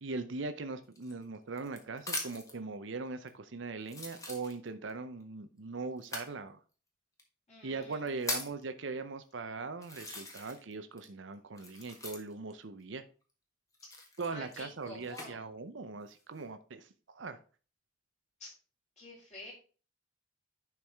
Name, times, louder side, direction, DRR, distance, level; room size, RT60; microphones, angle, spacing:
voice 1, 0.0-6.6 7.6-13.0 14.2-17.4, right 3 dB, 65° right, 9 dB, 0.7 m, -40 dB
sound 1, 0.9-2.6 3.3-3.4 3.8-4.9 6.0-6.3 7.2-7.3 7.8-8.6 9.3-9.4 9.8-10.7 11.0-12.5 13.7-15.3 15.9-16.4, left 2 dB, 15° left, 1.5 m, -41 dB
voice 2, 7.5-8.2 14.3-15.4 18.4-18.5 19.0-19.5, left 1 dB, 35° left, -4 dB, 4.5 m, -49 dB
10.5 x 4.7 x 3.5 m, 0.36 s
head